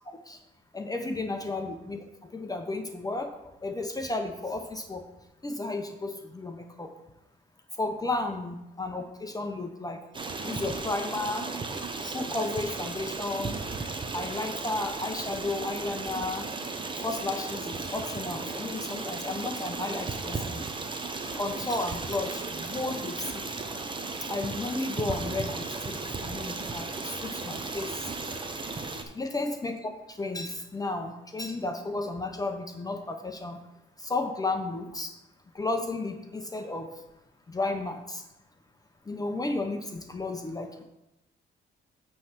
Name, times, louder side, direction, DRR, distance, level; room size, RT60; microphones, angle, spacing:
voice 1, 0.7-3.3 3.6-5.0 5.4-6.9 7.8-10.0 10.4-11.5 12.0-13.6 14.1-16.5 17.0-20.6 21.4-23.5 24.3-26.0 26.2-28.1 29.1-33.6 34.0-35.1 35.5-36.9 37.5-38.2 39.1-40.7, left 2 dB, 20° left, 4 dB, 0.7 m, -33 dB
Stream, 10.1-29.0, right 3 dB, 25° right, 0.8 m, -35 dB
8.7 x 3.3 x 5.8 m, 0.93 s
cardioid pair, 90°, 20 cm